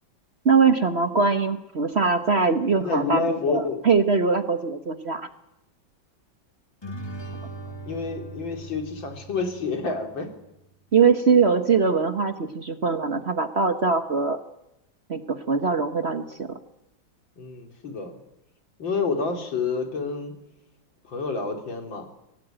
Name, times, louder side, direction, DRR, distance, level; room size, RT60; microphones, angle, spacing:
voice 1, 0.4-5.3 10.9-14.4 15.1-16.6, right 5 dB, 40° right, 8 dB, 1.2 m, -22 dB
voice 2, 2.8-3.8 7.9-10.3 17.4-18.2 18.8-20.3 21.0-22.1, left 4 dB, 75° left, 4 dB, 3.7 m, -28 dB
sound 1, 6.8-10.4, right 2 dB, 15° left, 1.6 m, -39 dB
25.0 x 17.5 x 9.0 m, 0.89 s
omnidirectional pair, 2.1 m